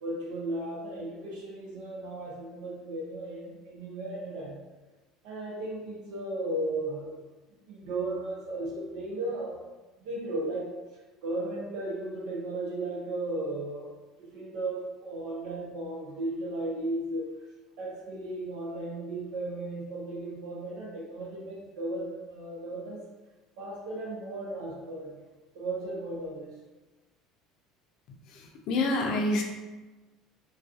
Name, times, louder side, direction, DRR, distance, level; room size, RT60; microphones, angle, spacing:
voice 1, 0.0-4.6 5.2-7.2 7.7-9.6 10.0-10.7 11.2-13.9 14.2-17.3 17.8-23.0 23.6-25.2 25.5-26.5, right 2 dB, 75° right, -4 dB, 0.7 m, -35 dB
voice 2, 28.3-29.4, left 2 dB, 65° left, 2 dB, 0.4 m, -27 dB
2.5 x 2.2 x 2.4 m, 1.2 s
supercardioid pair, 110°, 0 cm